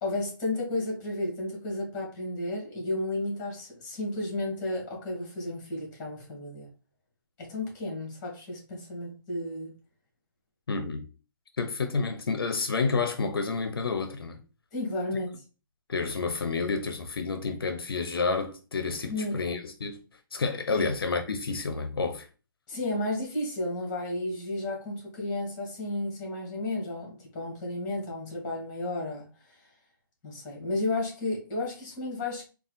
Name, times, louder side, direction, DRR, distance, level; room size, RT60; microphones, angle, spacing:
voice 1, 0.0-6.7 7.4-9.7 14.7-15.3 19.1-19.4 20.7-20.9 22.7-29.6 30.2-32.4, left 2 dB, 25° left, 2.2 m, -33 dB
voice 2, 10.7-11.1 11.6-14.4 15.9-20.0 20.3-22.3, left 4 dB, 90° left, 0.7 m, -29 dB
4.2 x 2.5 x 3.9 m
hypercardioid pair, 150°, 12 cm